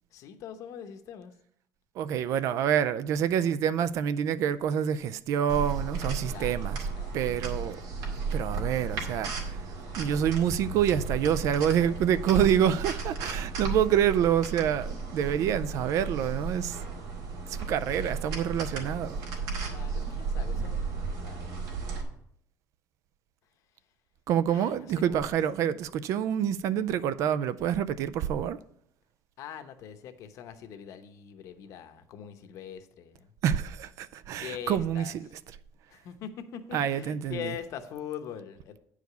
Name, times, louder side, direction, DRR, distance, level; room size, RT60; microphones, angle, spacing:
voice 1, 0.1-1.3 6.3-7.2 18.2-18.6 19.6-21.8 24.5-25.4 29.4-33.3 34.4-35.1 35.9-38.8, left 9 dB, 55° left, 0.9 m, -43 dB
voice 2, 2.0-6.8 7.1-7.8 8.3-9.7 10.0-16.8 17.5-19.2 24.3-28.6 33.4-35.1 36.7-37.4, right 9 dB, 55° right, 0.4 m, -27 dB
sound 1, 5.5-22.0, right 4 dB, 75° right, 2.1 m, -34 dB
9.2 x 4.9 x 6.7 m
cardioid pair, 175°, 7 cm